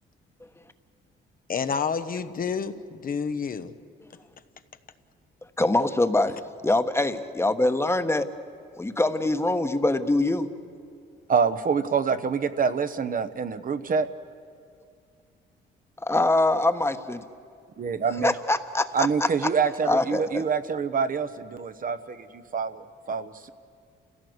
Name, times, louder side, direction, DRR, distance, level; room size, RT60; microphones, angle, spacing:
voice 1, 1.5-3.7, left 6 dB, 45° left, 1.0 m, -29 dB
voice 2, 5.6-8.3 8.8-10.5 16.0-17.3 18.2-19.1 19.8-20.4, left 2 dB, 15° left, 1.2 m, -24 dB
voice 3, 11.3-14.1 17.8-18.3 18.9-23.5, right 6 dB, 45° right, 1.0 m, -26 dB
29.0 x 16.5 x 8.0 m
cardioid pair, 90°, 20 cm